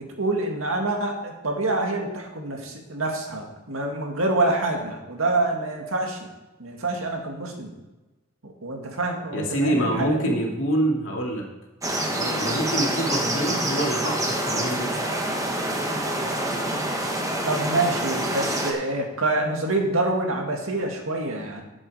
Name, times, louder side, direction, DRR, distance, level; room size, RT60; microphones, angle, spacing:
voice 1, 0.0-6.2 6.6-7.7 8.4-10.3 17.4-21.6, right 2 dB, 80° right, 2 dB, 2.0 m, -26 dB
voice 2, 9.3-11.5 12.1-14.9, right 1 dB, 65° left, -1 dB, 2.5 m, -26 dB
sound 1, 11.8-18.7, right 1 dB, 15° right, 1.3 m, -26 dB
12.0 x 7.6 x 4.9 m, 1.1 s
head